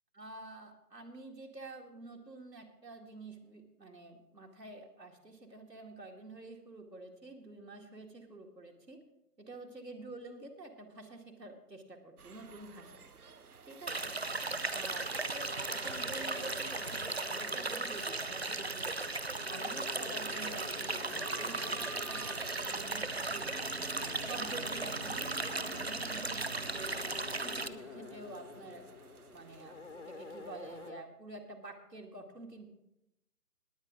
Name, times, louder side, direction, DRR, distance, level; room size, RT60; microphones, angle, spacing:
voice 1, 0.1-9.0 9.4-13.0 13.7-14.1 14.7-18.9 19.4-23.4 24.2-27.1 27.4-28.8 29.3-32.7, right 2 dB, 85° right, 2 dB, 2.4 m, -49 dB
sound 1, 12.2-30.9, right 5 dB, 65° right, 1.0 m, -52 dB
sound 2, 13.9-27.7, right 3 dB, 45° right, 0.5 m, -37 dB
sound 3, 15.2-31.0, left 4 dB, 50° left, 0.4 m, -50 dB
19.0 x 8.8 x 3.9 m, 0.86 s
figure-of-eight pair, 150°, 49 cm